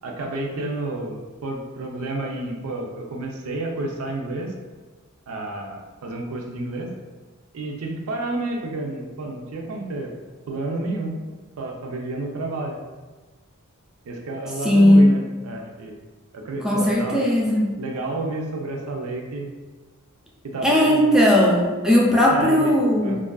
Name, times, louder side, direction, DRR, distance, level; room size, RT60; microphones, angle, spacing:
voice 1, 0.0-4.5 5.3-6.9 7.5-10.1 10.5-11.2 11.6-12.8 14.1-16.0 16.3-17.2 17.8-19.5 20.4-21.0 22.3-22.7 23.0-23.2, right 2 dB, 75° right, 1 dB, 0.4 m, -30 dB
voice 2, 14.6-15.2 16.6-17.7 20.6-23.1, left 1 dB, 5° right, -4 dB, 0.3 m, -17 dB
2.6 x 2.4 x 2.2 m, 1.3 s
head